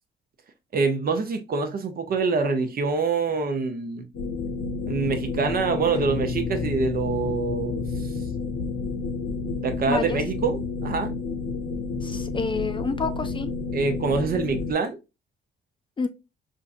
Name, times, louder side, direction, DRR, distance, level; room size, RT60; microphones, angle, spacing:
voice 1, 0.7-4.1 4.9-7.8 9.6-11.1 13.7-15.0, right 4 dB, 50° right, 0.7 m, -25 dB
sound 1, 4.1-14.7, left 4 dB, 80° left, 0.7 m, -31 dB
sound 2, 6.0-11.2, left 5 dB, 20° right, 1.1 m, -37 dB
voice 2, 9.9-10.2 12.0-13.5 16.0-16.1, left 4 dB, 25° left, 0.4 m, -28 dB
3.6 x 2.6 x 2.5 m
cardioid pair, 90°, 20 cm